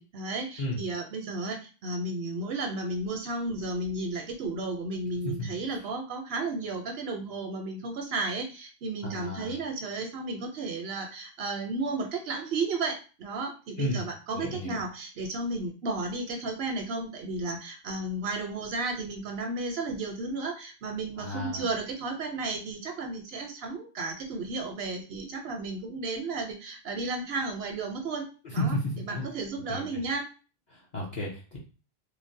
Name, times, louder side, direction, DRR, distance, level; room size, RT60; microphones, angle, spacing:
voice 1, 0.0-30.3, right 3 dB, 80° right, 3 dB, 0.8 m, -33 dB
voice 2, 9.0-9.6 13.8-14.0 14.3-14.8 21.2-21.6 28.4-29.2 29.7-29.8 30.7-31.6, left 1 dB, 50° left, -4 dB, 0.7 m, -32 dB
3.1 x 2.1 x 2.6 m, 0.34 s
omnidirectional pair, 1.0 m